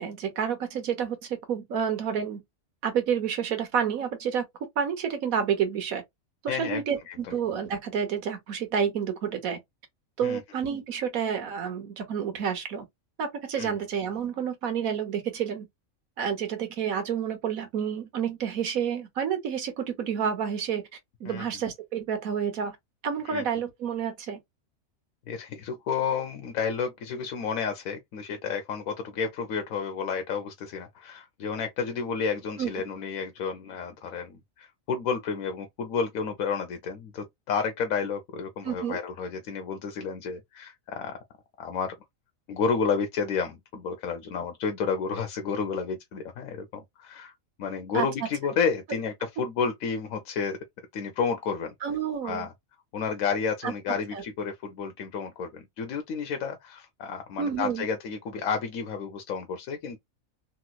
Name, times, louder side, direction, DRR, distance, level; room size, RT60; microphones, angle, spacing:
voice 1, 0.0-2.4 2.8-4.4 4.8-6.0 6.4-9.6 10.2-12.8 13.2-15.7 16.2-20.9 21.2-22.8 23.0-24.4 32.6-32.7 38.6-39.0 47.9-48.1 51.8-52.5 53.6-53.7 54.1-54.2 57.4-57.8, right 7 dB, 85° right, 1.5 m, -29 dB
voice 2, 6.5-6.8 7.1-7.2 10.2-10.4 13.6-13.7 21.3-21.4 23.3-23.4 25.3-41.2 41.6-41.9 42.5-47.3 47.6-50.6 50.9-51.7 52.2-52.5 52.9-60.0, left 5 dB, 90° left, 1.1 m, -31 dB
3.1 x 3.0 x 2.2 m
omnidirectional pair, 1.4 m